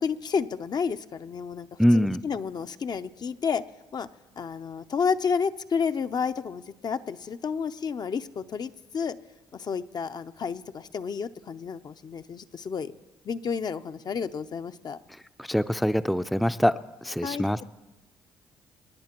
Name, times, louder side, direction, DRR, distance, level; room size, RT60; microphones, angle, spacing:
voice 1, 0.0-1.7 1.9-3.6 3.9-4.1 4.4-9.2 9.5-12.9 13.2-15.0 17.2-17.6, left 6 dB, 45° left, 10 dB, 0.6 m, -31 dB
voice 2, 1.8-2.2 15.4-17.6, equal, ahead, 11 dB, 0.5 m, -24 dB
27.5 x 10.5 x 3.0 m, 1.1 s
hypercardioid pair, 55°, 9 cm